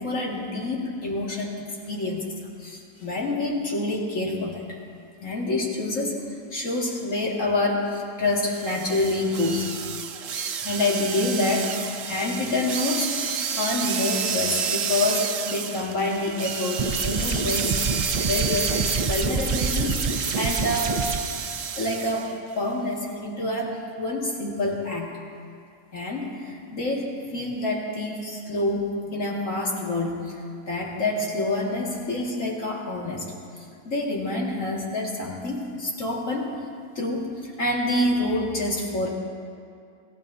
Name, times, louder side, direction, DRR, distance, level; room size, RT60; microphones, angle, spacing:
voice 1, 0.0-2.3 2.6-4.8 5.2-6.2 6.5-9.7 10.6-13.1 13.5-17.7 18.2-18.7 19.1-21.2 21.8-22.3 22.5-25.2 25.9-33.3 33.8-36.5 37.0-39.1, left 2 dB, 80° left, -3 dB, 2.6 m, -27 dB
sound 1, 8.4-22.3, right 7 dB, 85° right, 1.2 m, -30 dB
sound 2, 16.8-21.2, right 4 dB, 35° right, 0.7 m, -27 dB
26.0 x 14.5 x 2.8 m, 2.4 s
omnidirectional pair, 1.3 m